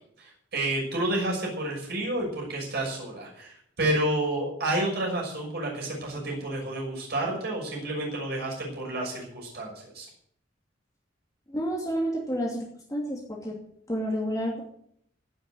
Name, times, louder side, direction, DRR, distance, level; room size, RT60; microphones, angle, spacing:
voice 1, 0.2-10.1, right 1 dB, 60° right, -2 dB, 6.2 m, -30 dB
voice 2, 11.5-13.6 13.9-14.6, equal, 20° left, -2 dB, 2.7 m, -30 dB
16.0 x 7.5 x 9.1 m, 0.69 s
head